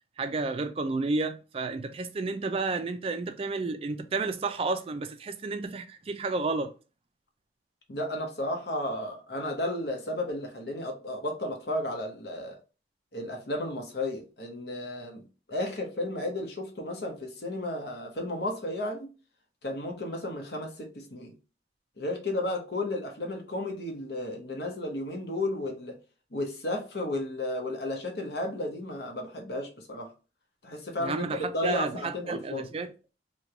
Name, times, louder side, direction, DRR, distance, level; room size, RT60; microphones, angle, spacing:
voice 1, 0.2-6.7 31.0-32.9, right 3 dB, 30° right, 0.3 m, -31 dB
voice 2, 7.9-12.5 13.1-15.2 15.5-19.1 19.6-21.3 22.0-25.9 26.3-30.1 30.6-31.3 31.5-32.6, left 1 dB, 60° left, 0.9 m, -33 dB
3.0 x 2.2 x 3.7 m
head